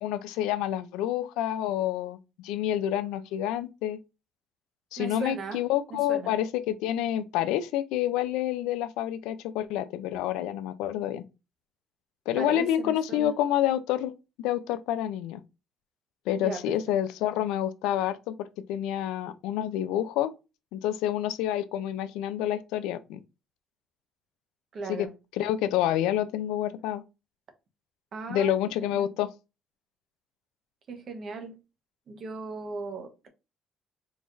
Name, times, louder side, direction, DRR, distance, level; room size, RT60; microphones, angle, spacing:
voice 1, 0.0-4.0 4.9-11.2 12.3-14.1 14.4-15.4 16.3-20.3 20.7-23.2 24.9-25.1 25.4-27.0 28.3-29.3, left 11 dB, 90° left, 0.5 m, -28 dB
voice 2, 5.0-5.6 5.9-6.3 12.4-13.3 16.4-16.8 24.7-25.1 28.1-28.5 28.8-29.1 30.9-31.5 32.1-33.3, right 3 dB, 55° right, 1.1 m, -37 dB
4.6 x 3.7 x 2.6 m
supercardioid pair, 80°, 0 cm